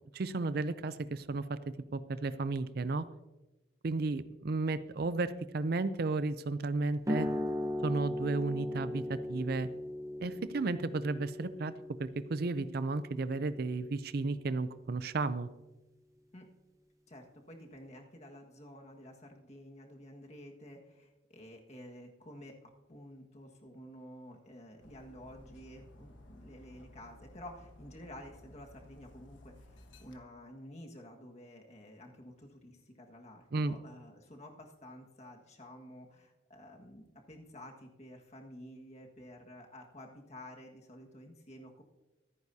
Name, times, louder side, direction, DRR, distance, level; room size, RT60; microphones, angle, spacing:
voice 1, 0.1-1.6 1.9-3.1 3.8-7.3 7.8-9.7 10.2-11.7 12.0-15.5 33.5-33.8, right 3 dB, 50° right, 14 dB, 0.5 m, -33 dB
sound 1, 7.1-14.2, left 1 dB, 15° right, 0.8 m, -38 dB
voice 2, 17.1-41.8, left 1 dB, 35° left, 1 dB, 1.7 m, -51 dB
Dog, 24.8-30.2, left 1 dB, 70° left, 1.2 m, -56 dB
25.0 x 9.4 x 2.8 m, 1.1 s
head